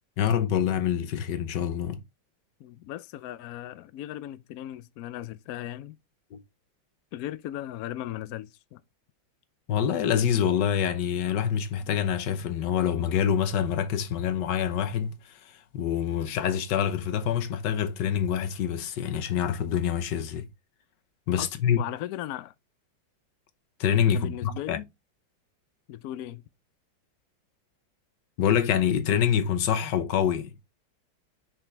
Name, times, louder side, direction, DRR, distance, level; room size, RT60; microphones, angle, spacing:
voice 1, 0.2-2.0 6.3-6.4 9.7-15.1 15.7-20.5 21.3-21.8 23.8-24.8 28.4-30.5, left 9 dB, 70° left, 1.4 m, -26 dB
voice 2, 2.6-6.0 7.1-8.8 21.4-22.5 24.1-24.9 25.9-26.4, left 13 dB, 85° left, 0.8 m, -37 dB
5.9 x 5.1 x 3.3 m
omnidirectional pair, 2.1 m